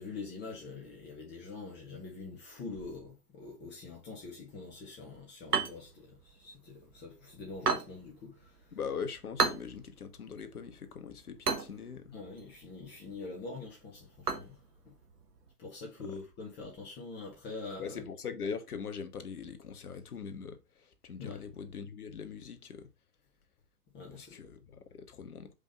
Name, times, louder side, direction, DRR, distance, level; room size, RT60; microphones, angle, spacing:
voice 1, 0.0-8.7 12.1-14.6 14.8-14.9 15.6-18.0 21.2-21.4 23.9-24.4, left 3 dB, 20° left, 1.6 m, -44 dB
sound 1, 5.4-15.5, right 4 dB, 75° right, 1.3 m, -38 dB
voice 2, 8.7-12.2 16.0-16.2 17.8-22.9 24.1-25.5, left 6 dB, 65° left, 1.2 m, -42 dB
5.1 x 3.6 x 5.4 m
figure-of-eight pair, 110°, 47 cm